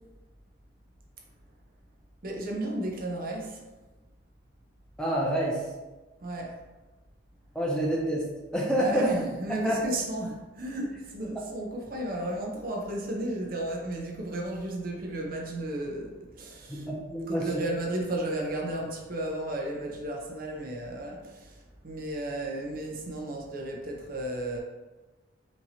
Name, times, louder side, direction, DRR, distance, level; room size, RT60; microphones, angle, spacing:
voice 1, 2.2-3.6 6.2-6.6 8.8-16.9 17.3-21.6 21.8-24.6, right 1 dB, 45° right, 0 dB, 0.6 m, -33 dB
voice 2, 5.0-5.7 7.5-9.2 9.6-9.8 16.7-17.6, right 1 dB, 5° left, -3 dB, 0.4 m, -28 dB
4.4 x 2.8 x 2.7 m, 1.2 s
head